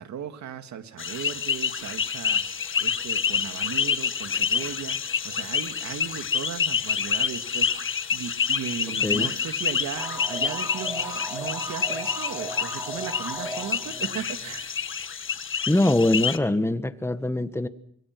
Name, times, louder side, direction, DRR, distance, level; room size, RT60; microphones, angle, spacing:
voice 1, 0.0-14.7, right 8 dB, 70° right, 8 dB, 2.3 m, -37 dB
sound 1, 1.0-16.4, left 7 dB, 40° left, 1.6 m, -28 dB
voice 2, 9.0-9.3 15.7-17.7, left 1 dB, 10° left, 11 dB, 1.6 m, -23 dB
sound 2, 9.9-14.6, equal, 10° right, 6.1 m, -36 dB
25.5 x 23.0 x 6.1 m, 0.68 s
cardioid pair, 90°, 30 cm